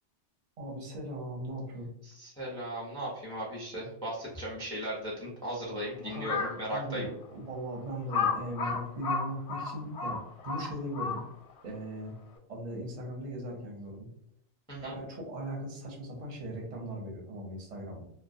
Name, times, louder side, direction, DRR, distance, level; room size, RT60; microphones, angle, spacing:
voice 1, 0.6-1.9 6.0-6.4 6.7-11.2 11.6-12.1 12.5-14.1 14.8-18.0, right 1 dB, 40° right, -1 dB, 0.7 m, -38 dB
voice 2, 2.0-7.1 14.7-15.0, equal, 5° left, -5 dB, 0.5 m, -37 dB
Crow, 6.1-6.6 7.2-7.3 8.1-11.5, left 5 dB, 90° left, 0.9 m, -32 dB
2.2 x 2.1 x 2.6 m, 0.71 s
omnidirectional pair, 1.2 m